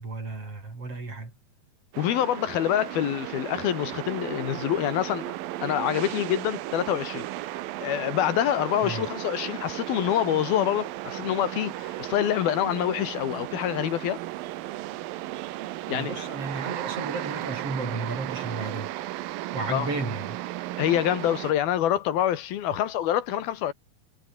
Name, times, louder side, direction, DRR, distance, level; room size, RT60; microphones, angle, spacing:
voice 1, 0.0-1.3 8.8-9.1 15.9-18.9 19.5-20.4, right 3 dB, 35° right, 7.1 m, -33 dB
sound 1, 1.9-21.5, right 16 dB, 75° right, 2.6 m, -35 dB
voice 2, 2.0-5.4 5.6-7.3 7.8-14.2 15.9-16.3 19.7-19.9 20.8-23.7, left 11 dB, 75° left, 3.4 m, -26 dB
omnidirectional pair, 4.4 m